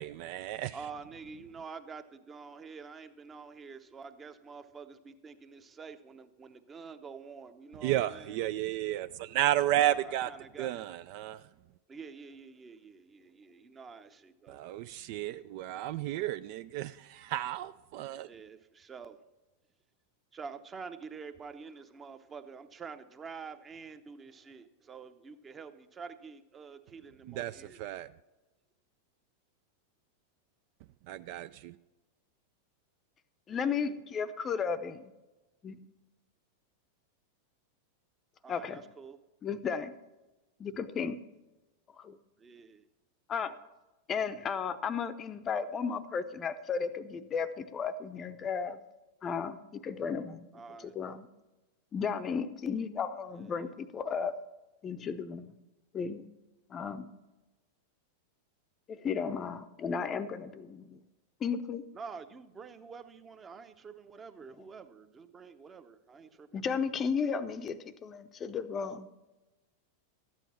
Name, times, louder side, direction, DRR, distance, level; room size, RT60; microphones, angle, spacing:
voice 1, 0.0-0.8 7.8-10.3 10.6-11.4 14.5-18.3 27.2-28.1 31.1-31.7, right 13 dB, 45° right, 0.3 m, -32 dB
voice 2, 0.7-8.4 9.6-10.9 11.9-14.6 18.3-19.2 20.3-27.8 33.5-33.8 38.4-39.2 42.4-42.9 50.5-50.9 53.3-53.7 61.9-66.5, right 5 dB, 20° right, 0.8 m, -47 dB
voice 3, 33.5-35.1 35.6-35.8 38.5-38.8 39.4-39.9 40.6-41.2 42.0-42.2 43.3-43.5 44.1-48.8 49.2-50.5 50.8-51.3 51.9-54.3 54.8-55.6 55.9-56.3 56.7-57.1 58.9-61.0 61.4-61.8 66.5-69.2, left 6 dB, 25° left, 0.6 m, -34 dB
13.0 x 9.0 x 4.3 m
figure-of-eight pair, 90°, 0 cm